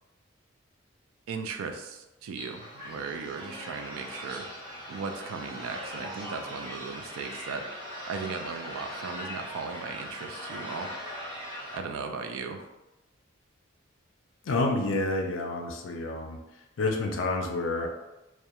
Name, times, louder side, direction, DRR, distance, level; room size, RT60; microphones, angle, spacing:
voice 1, 1.3-4.5 4.9-7.6 8.1-10.9 11.7-12.7, right 5 dB, 85° right, 5 dB, 0.3 m, -37 dB
sound 1, 2.4-11.8, equal, 25° right, 0.8 m, -40 dB
voice 2, 14.5-16.4 16.8-17.9, left 2 dB, 70° left, 3 dB, 0.4 m, -28 dB
2.3 x 2.1 x 2.8 m, 0.99 s
head